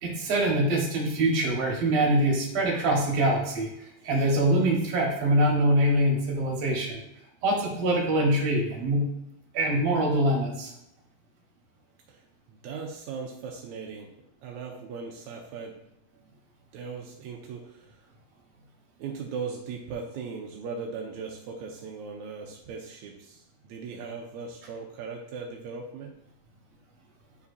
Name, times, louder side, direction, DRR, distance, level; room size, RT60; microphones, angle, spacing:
voice 1, 0.0-3.7 4.0-7.0 7.4-9.1 9.5-10.7, right 1 dB, 55° right, -1 dB, 2.3 m, -24 dB
voice 2, 12.5-14.1 14.4-15.8 16.7-18.0 19.0-26.1, right 5 dB, 80° right, 1 dB, 1.7 m, -38 dB
9.2 x 4.8 x 2.7 m, 0.82 s
omnidirectional pair, 4.1 m